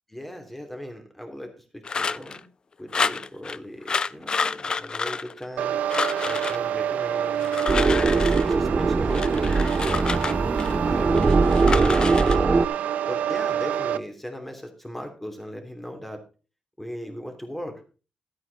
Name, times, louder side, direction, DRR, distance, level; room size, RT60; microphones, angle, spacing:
voice 1, 0.1-2.4 2.8-5.8 6.2-9.3 9.8-12.6 13.1-16.2 16.8-17.8, equal, 5° left, 4 dB, 3.0 m, -38 dB
sound 1, 1.8-2.4 2.9-3.6 3.9-5.6 5.9-6.6 7.3-8.5 9.1-10.7 11.1-12.4, left 4 dB, 35° left, 0.4 m, -29 dB
sound 2, 5.6-14.0, right 10 dB, 85° right, 0.5 m, -28 dB
sound 3, 7.7-12.6, right 4 dB, 30° right, 0.4 m, -21 dB
13.0 x 8.9 x 4.1 m, 0.35 s
cardioid pair, 110°, 2 cm